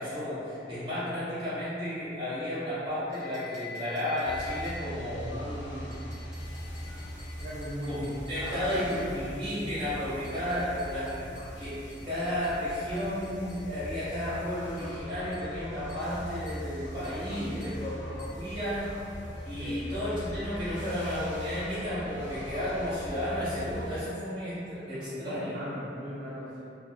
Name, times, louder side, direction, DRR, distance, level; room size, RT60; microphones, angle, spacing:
voice 1, 0.0-5.9 7.8-8.0 8.3-11.2 11.6-18.9 19.4-25.6, left 1 dB, 30° right, -13 dB, 1.2 m, -33 dB
sound 1, 3.1-5.1 5.9-9.1 10.2-13.7 14.8-15.0 15.3-15.6 15.9-16.2 16.5-16.7 17.0-17.3 17.6-17.9 18.2-18.4, left 3 dB, 20° left, 0.8 m, -49 dB
sound 2, 4.2-24.0, equal, 75° left, 0.5 m, -41 dB
voice 2, 7.4-9.7 17.3-17.6 19.6-19.8 24.9-26.6, equal, 45° right, -8 dB, 0.3 m, -39 dB
2.5 x 2.2 x 2.3 m, 2.6 s
head